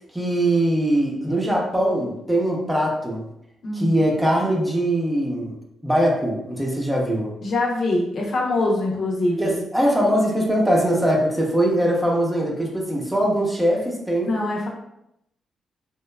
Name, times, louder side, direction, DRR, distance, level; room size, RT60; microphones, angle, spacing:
voice 1, 0.1-3.2 3.7-5.6 5.8-7.3 9.4-14.3, right 1 dB, 10° right, -2 dB, 0.8 m, -21 dB
voice 2, 3.6-3.9 7.4-9.5 14.3-14.7, left 2 dB, 60° left, -2 dB, 0.7 m, -23 dB
2.9 x 2.3 x 2.2 m, 0.79 s
supercardioid pair, 60°, 0 cm